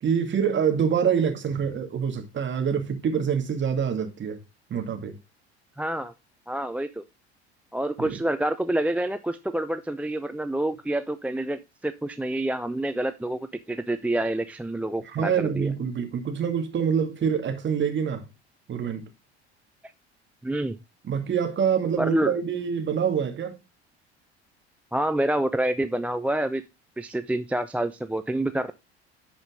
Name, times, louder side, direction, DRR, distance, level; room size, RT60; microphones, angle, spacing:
voice 1, 0.0-4.4 4.7-5.2 8.0-8.2 15.1-18.2 18.7-19.1 21.1-23.6, right 7 dB, 35° right, 2.3 m, -26 dB
voice 2, 5.8-6.1 6.5-7.0 7.7-15.7 20.4-20.8 22.0-22.3 24.9-26.6 27.0-28.7, right 1 dB, 5° right, 0.5 m, -27 dB
11.0 x 5.1 x 3.7 m
figure-of-eight pair, 65°, 33 cm